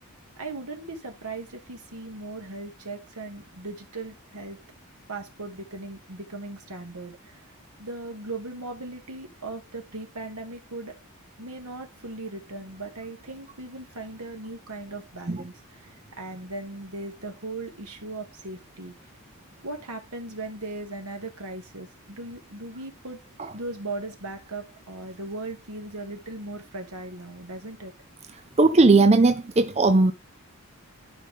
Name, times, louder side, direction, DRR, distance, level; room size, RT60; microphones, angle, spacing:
voice 1, 0.4-4.6 5.1-7.5 7.8-11.0 11.4-18.9 19.6-23.2 23.5-27.9, right 2 dB, 85° right, 2.0 m, -38 dB
voice 2, 28.6-30.1, right 3 dB, 30° right, 0.5 m, -18 dB
11.0 x 5.0 x 3.5 m
head